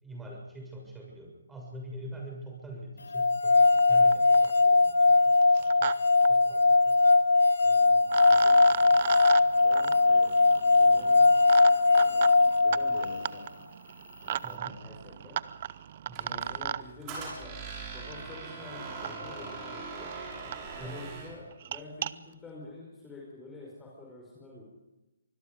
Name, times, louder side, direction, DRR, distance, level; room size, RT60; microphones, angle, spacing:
voice 1, 0.0-5.3 5.6-5.9 6.3-7.0 14.4-14.7 16.1-16.4 20.8-21.1, right 1 dB, 5° right, -1 dB, 6.8 m, -44 dB
sound 1, 3.1-13.3, left 3 dB, 85° left, 0.7 m, -21 dB
sound 2, 3.8-3.9 4.1-4.6 5.4-5.9 6.2-6.3 7.6-7.7 8.1-16.8 18.1-18.2 19.0-19.1 19.8-19.9 20.1-20.2 20.5-20.6 20.9-21.1 21.5-22.1, right 11 dB, 40° right, 0.8 m, -36 dB
voice 2, 3.9-4.2 7.6-9.0 9.6-10.4 10.8-11.3 12.0-12.3 12.6-13.7 14.2-15.4 16.2-17.6 17.9-20.2 20.8-24.6, left 2 dB, 10° left, -3 dB, 5.2 m, -48 dB
Squeak, 16.1-21.4, right 4 dB, 25° right, 6.9 m, -41 dB
25.5 x 20.5 x 5.3 m, 1.0 s
figure-of-eight pair, 145°, 0 cm